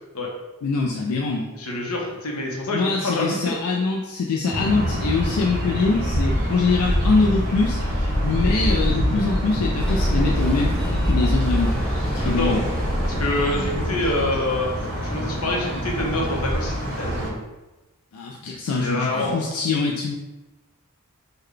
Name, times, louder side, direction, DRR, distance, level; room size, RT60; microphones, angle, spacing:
voice 1, 0.6-1.5 2.7-11.7 12.2-12.6 18.1-20.2, left 4 dB, 85° left, 0 dB, 0.4 m, -23 dB
voice 2, 1.5-3.5 12.1-12.6 13.0-14.7 15.0-17.4 18.8-19.5, left 1 dB, 70° left, -1 dB, 0.7 m, -26 dB
sound 1, 4.5-17.3, equal, 40° right, 0.7 m, -26 dB
sound 2, 9.8-14.6, equal, 5° left, 0.5 m, -25 dB
3.7 x 2.2 x 3.2 m, 1.1 s
head